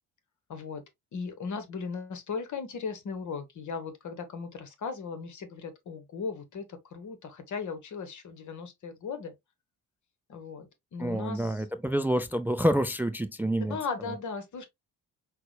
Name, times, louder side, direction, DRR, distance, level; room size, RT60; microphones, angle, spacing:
voice 1, 0.5-0.8 1.1-9.3 10.3-11.6 13.7-14.6, left 5 dB, 40° left, 1.1 m, -37 dB
voice 2, 11.0-13.8, right 1 dB, 5° right, 0.4 m, -28 dB
5.8 x 2.2 x 3.3 m
figure-of-eight pair, 45°, 43 cm